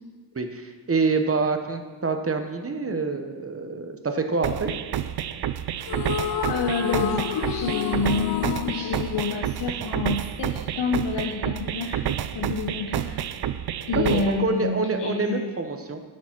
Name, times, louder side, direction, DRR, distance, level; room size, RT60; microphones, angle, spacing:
voice 1, 0.3-4.7 14.0-16.0, right 4 dB, 35° right, 6 dB, 0.9 m, -26 dB
sound 1, 4.4-14.4, right 10 dB, 70° right, 0.5 m, -29 dB
sound 2, 5.8-10.2, left 9 dB, 60° left, 0.5 m, -31 dB
voice 2, 6.5-12.0 12.3-13.2 13.9-15.5, left 4 dB, 90° left, 1 dB, 0.9 m, -28 dB
9.5 x 7.0 x 5.9 m, 1.4 s
wide cardioid pair, 110°, 41 cm